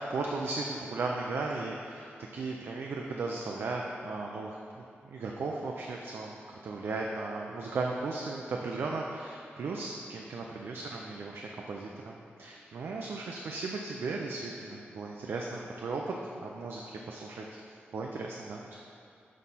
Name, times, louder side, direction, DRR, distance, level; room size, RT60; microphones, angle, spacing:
voice 1, 0.0-17.5 17.9-18.8, right 3 dB, 70° right, 0 dB, 0.4 m, -36 dB
7.3 x 4.2 x 4.1 m, 2.5 s
wide cardioid pair, 145°, 4 cm